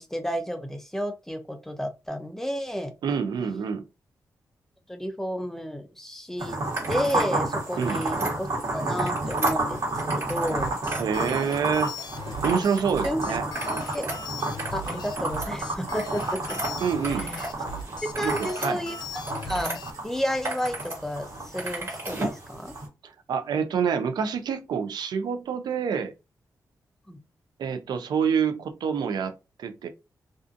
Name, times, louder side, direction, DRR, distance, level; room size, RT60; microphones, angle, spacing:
voice 1, 0.0-2.9 4.9-6.6 6.9-8.5 8.7-9.8 10.1-10.7 13.0-13.2 13.6-14.1 14.7-16.2 16.5-16.6 17.1-17.5 18.0-19.7 20.0-22.7 27.1-27.2, equal, 5° left, 0.4 m, -31 dB
voice 2, 3.0-3.8 7.8-8.0 11.0-11.9 12.4-13.4 16.8-17.3 18.2-18.8 23.0-26.1 27.6-29.9, right 6 dB, 90° right, 0.4 m, -27 dB
sound 1, 6.4-22.9, right 2 dB, 60° right, 1.2 m, -31 dB
sound 2, 6.7-7.3 7.7-8.3 8.8-10.6 10.8-12.0 12.4-13.1 13.4-17.5 17.9-19.8 20.2-21.0 21.2-22.4, right 2 dB, 40° right, 1.3 m, -35 dB
sound 3, 10.5-19.9, left 2 dB, 90° left, 0.4 m, -38 dB
2.5 x 2.4 x 2.4 m
wide cardioid pair, 150°, 7 cm